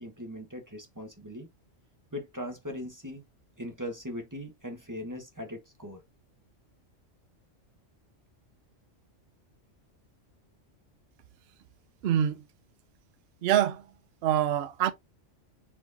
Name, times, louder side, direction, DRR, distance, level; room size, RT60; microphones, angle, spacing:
voice 1, 0.0-1.5 2.1-3.2 3.6-6.0, left 1 dB, 15° right, 1.2 m, -39 dB
voice 2, 12.0-12.4 13.4-13.9 14.2-14.9, right 10 dB, 65° right, 0.7 m, -25 dB
4.4 x 4.2 x 2.7 m
omnidirectional pair, 1.3 m